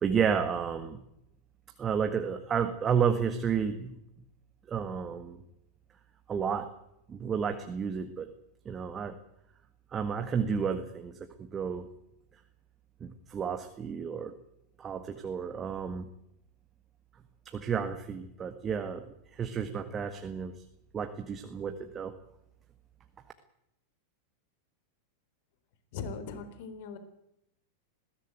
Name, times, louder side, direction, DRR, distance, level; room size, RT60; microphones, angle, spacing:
voice 1, 0.0-1.0 1.8-4.0 4.7-5.4 6.3-6.7 7.1-8.3 8.7-9.2 9.9-11.9 13.0-14.3 14.8-16.1 17.5-20.6 20.9-22.2, right 7 dB, 20° right, 7 dB, 1.8 m, -31 dB
voice 2, 25.9-27.0, left 5 dB, 50° left, 10 dB, 3.7 m, -39 dB
21.0 x 17.0 x 9.2 m, 0.80 s
figure-of-eight pair, 90°, 0 cm